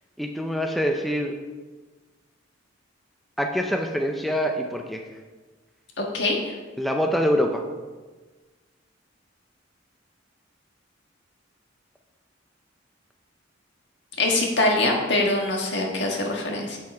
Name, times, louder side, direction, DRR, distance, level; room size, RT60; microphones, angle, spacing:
voice 1, 0.2-1.3 3.4-5.0 6.8-7.6, equal, ahead, 2 dB, 0.5 m, -25 dB
voice 2, 6.0-6.5 14.2-16.8, left 2 dB, 60° left, 0 dB, 1.6 m, -23 dB
7.5 x 7.4 x 4.6 m, 1.3 s
head